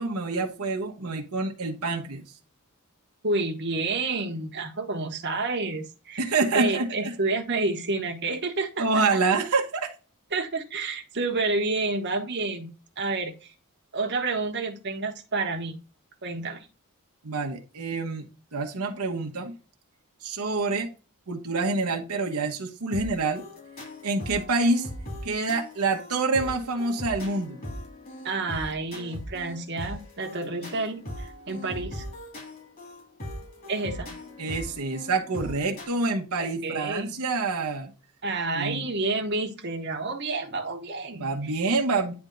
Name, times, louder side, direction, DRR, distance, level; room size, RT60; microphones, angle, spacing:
voice 1, 0.0-2.2 6.2-7.1 8.8-9.9 17.2-19.5 20.2-20.9 21.3-23.4 24.0-24.9 25.2-27.6 34.4-37.9 38.5-38.9 41.1-42.1, right 3 dB, 80° right, 1.1 m, -27 dB
voice 2, 3.2-8.8 9.1-9.2 10.3-13.5 13.9-15.8 16.2-16.7 28.2-32.0 33.7-34.1 36.4-37.1 38.2-41.5, right 3 dB, 50° right, 1.2 m, -29 dB
sound 1, 22.9-35.9, equal, 40° left, 3.2 m, -39 dB
9.7 x 3.5 x 3.9 m
head